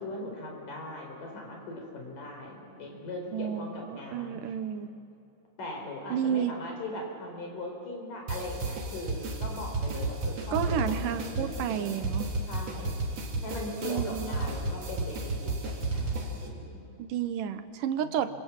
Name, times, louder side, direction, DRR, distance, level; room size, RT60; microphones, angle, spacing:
voice 1, 0.0-4.4 5.6-12.1 12.5-13.0 13.4-16.8 18.0-18.2, left 2 dB, 55° left, 1 dB, 6.0 m, -40 dB
voice 2, 3.3-4.9 6.1-6.5 10.5-12.3 13.8-14.3 17.0-18.3, right 8 dB, 70° right, 11 dB, 2.3 m, -31 dB
sound 1, 8.3-16.5, right 2 dB, 45° right, 3.6 m, -33 dB
27.0 x 25.5 x 7.4 m, 2.8 s
omnidirectional pair, 4.5 m